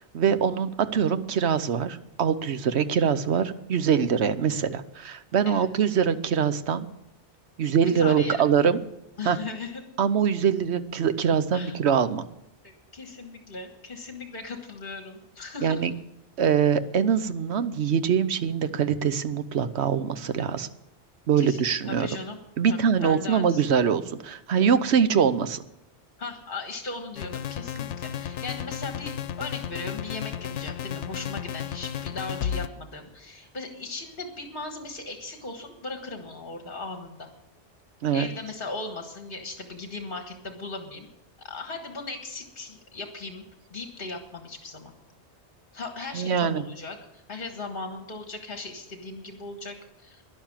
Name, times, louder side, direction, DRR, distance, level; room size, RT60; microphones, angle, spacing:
voice 1, 0.0-6.9 7.6-8.8 9.2-9.4 10.0-12.2 15.6-15.9 16.4-20.7 21.3-22.1 22.6-25.6 38.0-38.3 46.1-46.6, right 7 dB, 70° right, 12 dB, 1.1 m, -23 dB
voice 2, 7.8-8.4 9.2-9.8 11.5-11.8 12.6-15.9 21.4-22.4 22.7-23.6 26.2-37.3 38.1-41.1 41.4-43.5 43.7-44.9 45.7-50.2, left 3 dB, 50° left, 4 dB, 1.7 m, -38 dB
sound 1, 27.2-32.7, left 9 dB, 90° left, 1.0 m, -33 dB
12.0 x 11.0 x 7.4 m, 0.84 s
omnidirectional pair, 1.2 m